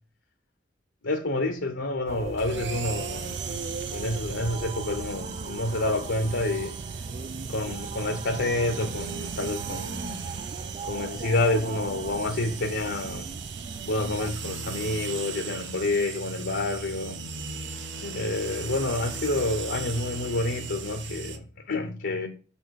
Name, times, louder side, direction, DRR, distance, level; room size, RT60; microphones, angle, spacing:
voice 1, 1.0-3.6 3.9-6.8 7.5-10.2 10.9-13.3 13.9-17.2 18.0-22.3, left 2 dB, 65° left, 0.9 m, -28 dB
sound 1, 2.1-14.3, right 4 dB, 35° right, 0.3 m, -37 dB
sound 2, 2.4-21.4, right 5 dB, 65° right, 1.0 m, -38 dB
6.9 x 4.5 x 4.7 m
head